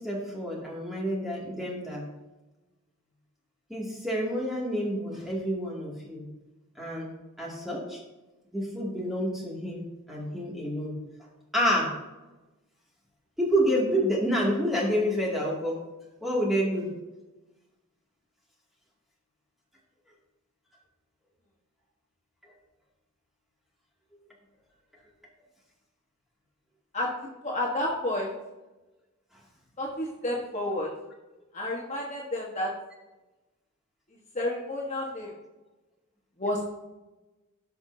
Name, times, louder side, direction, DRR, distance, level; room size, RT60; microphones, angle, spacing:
voice 1, 0.0-2.1 3.7-6.2 6.8-7.1 7.4-8.0 8.5-10.9 11.5-11.9 13.4-15.8 16.2-16.9, equal, ahead, -5 dB, 2.5 m, -28 dB
voice 2, 27.4-28.3 29.8-30.9 31.5-32.7 34.3-35.3 36.4-36.7, left 1 dB, 35° left, -2 dB, 1.4 m, -30 dB
17.0 x 5.8 x 2.8 m, 1.1 s
head